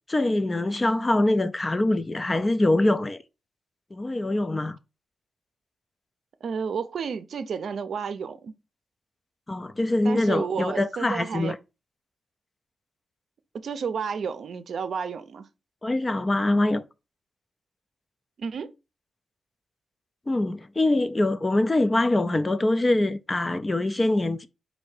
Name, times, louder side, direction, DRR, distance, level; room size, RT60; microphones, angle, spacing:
voice 1, 0.1-3.2 3.9-4.8 9.5-11.6 15.8-16.8 20.3-24.5, left 2 dB, 20° left, 0.4 m, -24 dB
voice 2, 6.4-8.5 10.0-11.6 13.5-15.5 18.4-18.7, right 6 dB, 65° right, 0.5 m, -31 dB
4.2 x 2.6 x 4.9 m
wide cardioid pair, 115°, 0 cm